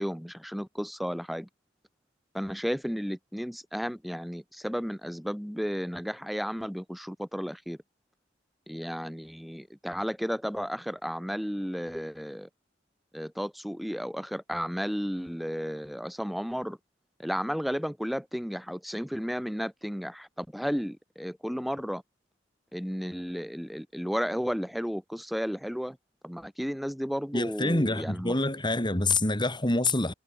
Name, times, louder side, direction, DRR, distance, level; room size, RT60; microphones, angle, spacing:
voice 1, 0.0-1.5 2.3-7.8 8.7-12.5 13.1-16.8 17.2-22.0 22.7-26.0 26.2-28.3, equal, ahead, 5.8 m, -33 dB
voice 2, 27.3-30.1, left 2 dB, 25° left, 4.8 m, -26 dB
head